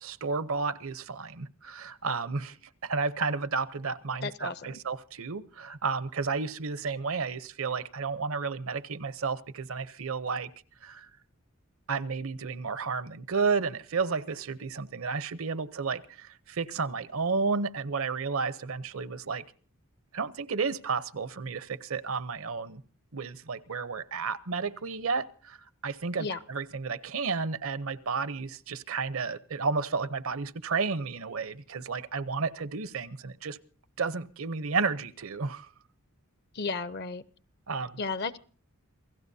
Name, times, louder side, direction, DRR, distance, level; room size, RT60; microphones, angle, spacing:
voice 1, 0.0-2.6 2.8-10.5 10.8-11.1 11.9-19.4 20.1-22.8 23.1-25.6 25.8-33.6 34.0-35.7 37.7-38.0, right 4 dB, 65° right, 16 dB, 0.8 m, -32 dB
voice 2, 4.2-4.8 26.2-26.4 36.5-37.2 38.0-38.4, left 4 dB, 50° left, 15 dB, 0.7 m, -33 dB
28.0 x 17.0 x 2.7 m, 0.41 s
head